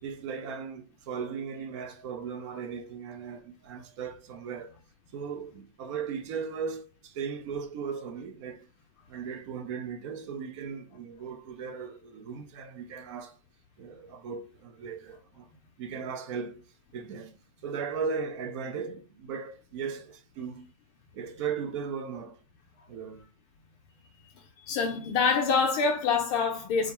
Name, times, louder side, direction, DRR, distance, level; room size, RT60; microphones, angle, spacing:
voice 1, 0.0-4.8 5.1-8.7 9.1-13.4 13.8-15.5 15.8-16.6 16.9-17.4 17.6-20.7 21.1-22.4 22.9-23.2, right 6 dB, 55° right, 0.6 m, -37 dB
voice 2, 24.7-26.9, left 5 dB, 40° left, 0.5 m, -25 dB
2.4 x 2.1 x 2.9 m
hypercardioid pair, 125°, 19 cm